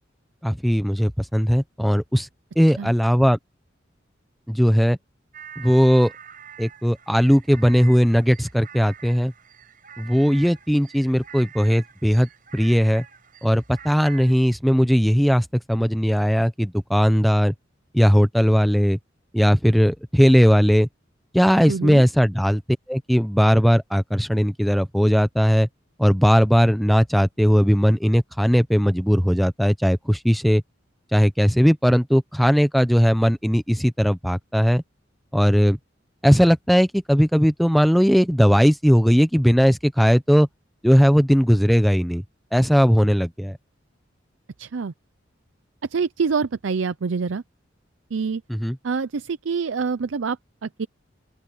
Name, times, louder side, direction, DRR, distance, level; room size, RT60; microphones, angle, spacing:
voice 1, 0.4-2.3 2.6-3.4 4.5-5.0 5.6-6.1 6.6-9.3 10.0-13.0 13.4-17.5 17.9-19.0 19.3-20.9 21.3-22.6 22.9-25.7 26.0-30.6 31.1-34.8 35.3-35.8 36.2-40.5 40.8-42.2 42.5-43.6 48.5-48.8, equal, ahead, 1.0 m, -18 dB
sound 1, 5.3-14.4, right 8 dB, 45° right, 6.7 m, -45 dB
voice 2, 21.7-22.0 44.6-44.9 45.9-47.4 48.1-48.4 48.8-50.9, right 5 dB, 80° right, 0.5 m, -26 dB
open air
head